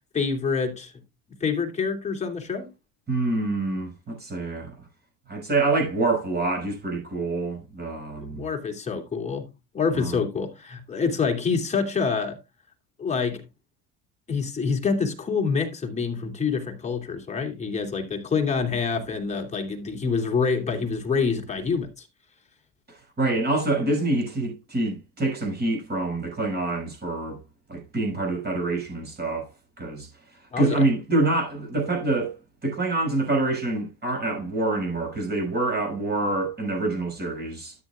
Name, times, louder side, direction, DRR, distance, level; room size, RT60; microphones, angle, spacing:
voice 1, 0.1-0.9 1.4-2.7 8.2-9.5 9.7-12.4 13.0-13.4 14.3-22.1 30.5-30.9, left 5 dB, 15° left, 2.8 m, -26 dB
voice 2, 3.1-4.7 5.3-8.4 9.9-10.2 22.9-27.4 27.7-29.5 29.8-30.1 30.6-32.4 32.6-37.7, right 2 dB, 25° right, 6.4 m, -26 dB
13.0 x 9.5 x 2.4 m
cardioid pair, 125°, 40 cm